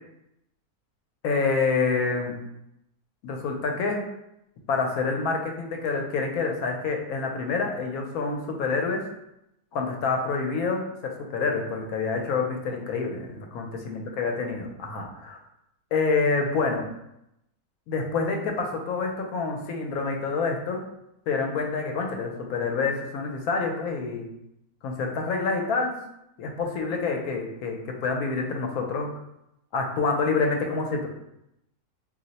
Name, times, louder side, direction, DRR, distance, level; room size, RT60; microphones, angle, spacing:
voice 1, 1.2-2.3 3.2-4.0 4.7-9.0 9.7-15.4 15.9-16.8 17.9-20.8 21.3-24.3 24.8-26.0 26.4-29.1 29.7-31.1, left 4 dB, 75° left, 2 dB, 1.0 m, -27 dB
2.6 x 2.0 x 3.9 m, 0.83 s
omnidirectional pair, 1.6 m